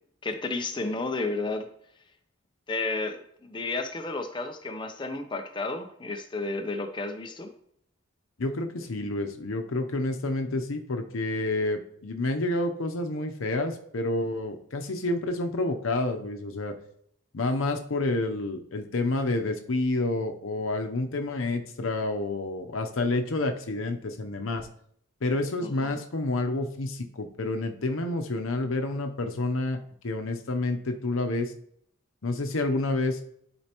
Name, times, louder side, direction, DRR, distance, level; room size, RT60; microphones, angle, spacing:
voice 1, 0.2-1.7 2.7-7.5 25.6-26.0, left 3 dB, 25° left, 6 dB, 0.7 m, -32 dB
voice 2, 8.4-16.7 17.3-24.7 25.2-31.5 32.2-33.2, left 2 dB, 80° left, 5 dB, 0.8 m, -29 dB
12.0 x 4.4 x 3.0 m, 0.68 s
head